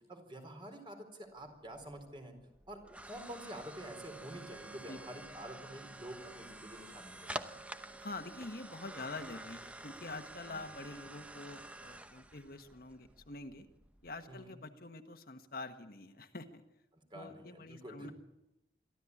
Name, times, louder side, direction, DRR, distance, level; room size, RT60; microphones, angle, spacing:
voice 1, 0.1-2.3 2.7-2.8 3.1-7.3 10.5-10.6 14.3-14.5 17.1-18.1, right 1 dB, 30° right, 5 dB, 4.3 m, -48 dB
sound 1, 1.4-14.4, right 1 dB, 10° right, 0.9 m, -49 dB
voice 2, 8.0-13.7 14.0-16.6 17.1-18.1, left 2 dB, 55° left, 6 dB, 1.5 m, -46 dB
23.5 x 14.5 x 9.8 m, 0.90 s
head